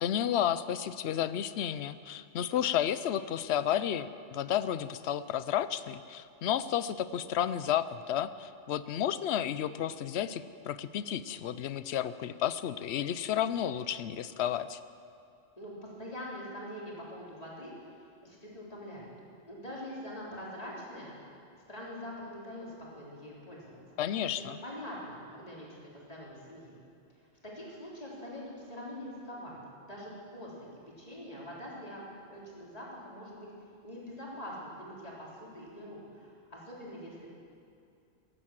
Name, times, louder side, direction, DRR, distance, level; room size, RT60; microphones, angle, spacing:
voice 1, 0.0-14.8 24.0-24.6, left 10 dB, 70° left, 14 dB, 0.8 m, -32 dB
voice 2, 15.6-17.7 18.2-19.1 19.5-21.1 21.7-22.7 22.9-23.8 24.6-26.8 27.4-29.6 29.9-30.5 31.0-33.5 33.8-37.3, equal, 30° left, -5 dB, 3.7 m, -44 dB
16.5 x 11.0 x 7.4 m, 2.6 s
omnidirectional pair, 1.2 m